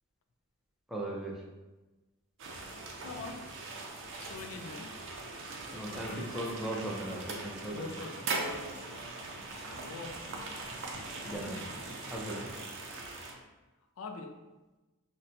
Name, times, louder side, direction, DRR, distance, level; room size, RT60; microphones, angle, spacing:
voice 1, 0.9-1.4 5.7-7.9 11.2-11.6 12.1-12.5, right 1 dB, ahead, -3 dB, 0.5 m, -38 dB
sound 1, 2.4-13.3, right 3 dB, 60° right, 0.5 m, -41 dB
voice 2, 3.0-3.5 4.2-5.0 5.9-6.3 7.7-10.3 10.5-10.9 11.3-11.7 14.0-14.4, left 3 dB, 75° left, 5 dB, 0.4 m, -45 dB
sound 2, 3.0-3.2 3.7-5.3 5.7-5.9 6.3-6.5 7.0-7.2 7.5-11.4 11.8-12.6, right 1 dB, 35° right, 0.7 m, -55 dB
Trumpet, 5.8-11.1, right 1 dB, 25° left, 0.9 m, -56 dB
4.0 x 2.1 x 2.6 m, 1.1 s
head